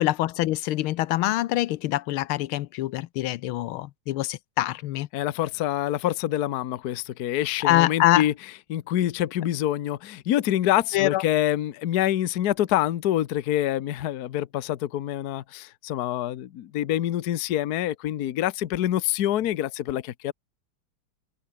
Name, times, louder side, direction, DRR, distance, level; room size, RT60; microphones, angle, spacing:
voice 1, 0.0-5.1 7.6-8.3 10.9-11.2, left 15 dB, 85° left, 1.5 m, -24 dB
voice 2, 5.1-8.3 8.7-20.3, left 12 dB, 60° left, 1.2 m, -26 dB
omnidirectional pair, 2.3 m